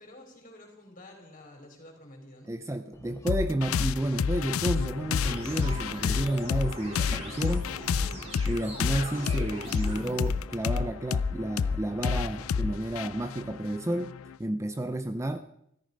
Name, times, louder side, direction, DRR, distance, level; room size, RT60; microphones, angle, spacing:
voice 1, 0.0-2.5, left 1 dB, 40° left, 2 dB, 4.1 m, -50 dB
voice 2, 2.5-7.7 8.5-14.1 14.4-15.4, right 1 dB, 15° right, 9 dB, 0.5 m, -31 dB
sound 1, 2.9-13.6, equal, 15° left, 1.2 m, -48 dB
sound 2, 3.3-14.4, left 6 dB, 80° left, 0.4 m, -30 dB
sound 3, 5.2-10.3, right 1 dB, 30° right, 4.0 m, -42 dB
14.0 x 14.0 x 5.3 m, 0.75 s
head